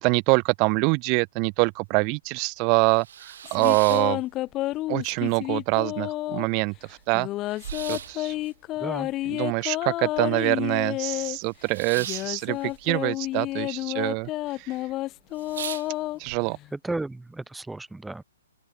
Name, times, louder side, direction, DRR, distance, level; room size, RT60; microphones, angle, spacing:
voice 1, 0.0-4.2 4.9-7.3 7.9-8.3 9.3-14.3 14.6-14.7 16.2-16.6, right 33 dB, 35° right, 2.8 m, -25 dB
sound 1, 2.6-4.8 5.1-5.9 6.2-6.3 6.5-10.6 10.9-13.7 14.0-14.5 14.9-15.0 15.3-16.4, right 9 dB, 65° right, 3.1 m, -40 dB
sound 2, 3.4-6.6 7.1-11.4 12.0-16.7, left 16 dB, 25° left, 5.2 m, -30 dB
voice 2, 8.8-9.1 16.7-18.2, right 2 dB, 5° right, 6.4 m, -33 dB
open air
hypercardioid pair, 135°, 0 cm